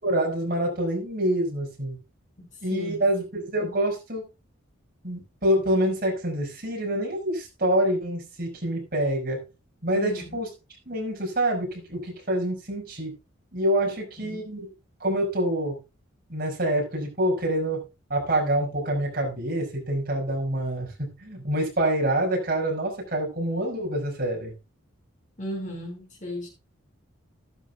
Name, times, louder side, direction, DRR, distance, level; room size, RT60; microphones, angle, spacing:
voice 1, 0.0-2.0 2.6-4.3 5.0-9.5 9.8-10.5 10.9-13.1 13.5-14.7 15.0-15.8 16.3-17.8 18.1-24.6, right 1 dB, 45° right, 5.4 m, -26 dB
voice 2, 2.4-3.1 9.9-10.4 13.9-14.4 25.4-26.5, equal, 35° left, 5.0 m, -37 dB
13.5 x 12.0 x 2.3 m
head